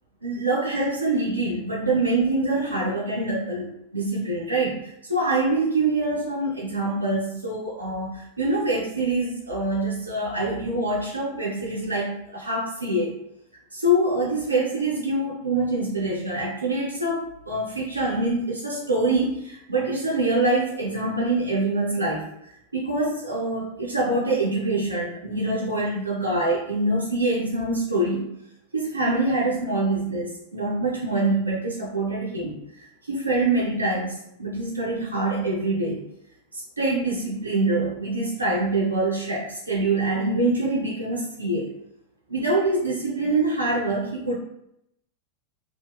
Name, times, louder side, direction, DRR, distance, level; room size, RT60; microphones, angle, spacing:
voice 1, 0.2-13.2 13.7-22.3 22.7-28.3 28.7-32.6 33.0-36.0 36.5-41.7 42.3-44.4, right 2 dB, 80° right, -5 dB, 0.6 m, -25 dB
2.9 x 2.0 x 2.2 m, 0.76 s
figure-of-eight pair, 90°, 0 cm